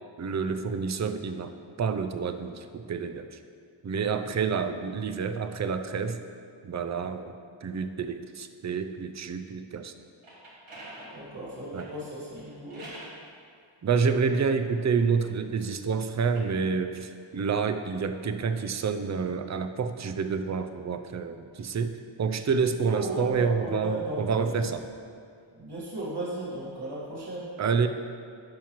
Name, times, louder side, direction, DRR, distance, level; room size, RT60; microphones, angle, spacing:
voice 1, 0.2-1.5 1.8-3.2 3.8-6.2 6.6-7.3 7.6-9.9 11.7-11.9 13.8-24.8 27.6-27.9, right 5 dB, 35° right, 8 dB, 0.4 m, -28 dB
sound 1, 10.0-13.2 14.0-15.7 16.2-18.5, right 1 dB, 75° right, 1.8 m, -49 dB
voice 2, 11.1-12.9 22.8-24.7 25.5-27.5, right 1 dB, 50° right, -7 dB, 1.6 m, -35 dB
9.6 x 5.7 x 3.0 m, 2.3 s
wide cardioid pair, 75°, 49 cm